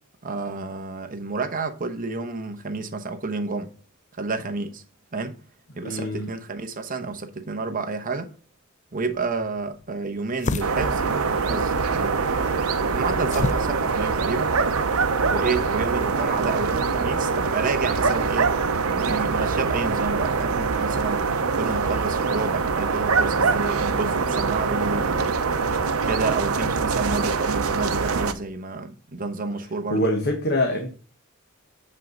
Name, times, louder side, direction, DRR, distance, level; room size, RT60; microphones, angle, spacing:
voice 1, 0.2-3.7 4.2-4.8 5.1-5.4 5.8-8.3 8.9-12.6 12.9-14.5 15.3-18.5 18.9-21.2 21.5-25.4 26.0-30.1, right 3 dB, 40° right, 0.9 m, -30 dB
voice 2, 5.8-6.3 29.9-30.9, left 1 dB, 50° left, 1.2 m, -24 dB
sound 1, 9.1-15.5, left 3 dB, 35° left, 0.4 m, -35 dB
sound 2, 10.6-28.3, right 4 dB, 80° right, 0.7 m, -24 dB
7.5 x 5.5 x 3.8 m
head